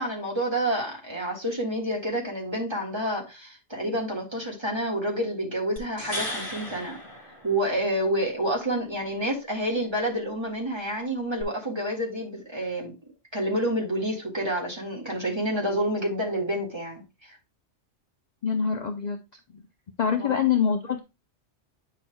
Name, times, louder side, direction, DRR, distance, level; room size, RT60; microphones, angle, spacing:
voice 1, 0.0-7.0 7.4-12.9 13.3-17.0 17.3-17.4 20.2-20.4, right 1 dB, 20° right, 1.9 m, -28 dB
sound 1, 5.8-8.0 11.4-11.5, left 1 dB, 25° left, 2.0 m, -36 dB
voice 2, 18.4-19.2 19.5-19.6 20.0-21.0, left 7 dB, 45° left, 0.7 m, -25 dB
9.4 x 5.8 x 2.2 m
omnidirectional pair, 1.2 m